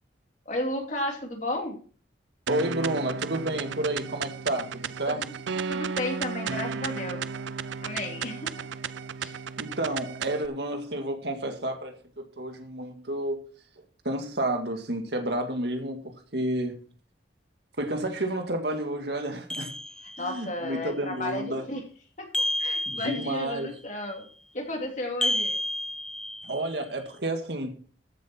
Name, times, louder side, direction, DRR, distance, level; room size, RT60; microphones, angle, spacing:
voice 1, 0.5-1.8 5.1-5.3 5.7-7.2 7.8-8.6 9.2-9.4 20.2-21.8 22.2-24.3 24.5-25.5, left 1 dB, 40° left, 2.9 m, -33 dB
voice 2, 2.5-5.2 9.6-13.4 14.0-16.8 17.8-19.7 20.2-21.7 22.9-23.8 26.4-27.8, right 1 dB, 65° right, 1.9 m, -30 dB
sound 1, 2.5-10.5, right 6 dB, 85° right, 0.5 m, -34 dB
sound 2, 19.5-20.5 22.3-23.6 25.2-26.7, left 1 dB, 5° left, 0.4 m, -30 dB
14.0 x 7.6 x 4.4 m
head